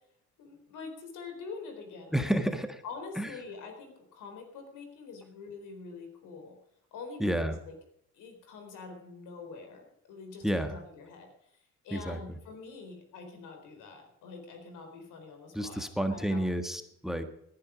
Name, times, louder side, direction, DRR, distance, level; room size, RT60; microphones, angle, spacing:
voice 1, 0.4-2.4 2.8-6.6 6.9-7.7 8.1-16.4, left 4 dB, 85° left, 6 dB, 4.2 m, -45 dB
voice 2, 2.1-2.8 3.2-3.3 7.2-7.6 10.4-10.8 11.9-12.2 15.5-17.2, equal, ahead, 8 dB, 1.6 m, -30 dB
18.5 x 10.5 x 5.1 m, 0.77 s
cardioid pair, 90°, 30 cm